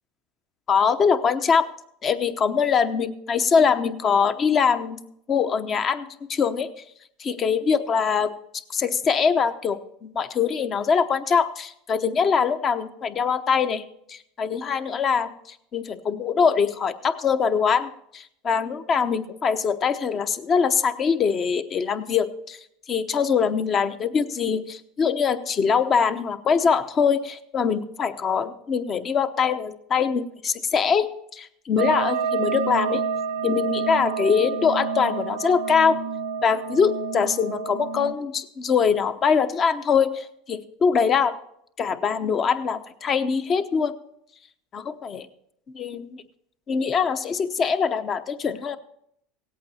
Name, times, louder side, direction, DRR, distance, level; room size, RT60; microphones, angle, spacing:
voice 1, 0.7-1.7 2.0-5.0 5.3-6.7 7.2-8.3 8.7-13.8 14.1-22.6 22.9-31.1 31.3-33.0 33.4-36.0 36.4-41.3 41.8-43.9 44.7-45.3 45.7-46.2 46.7-48.8, left 6 dB, 35° left, 11 dB, 0.8 m, -23 dB
sound 1, 31.8-38.1, right 5 dB, 75° right, 0.6 m, -28 dB
17.0 x 8.5 x 4.3 m, 0.73 s
supercardioid pair, 120°, 0 cm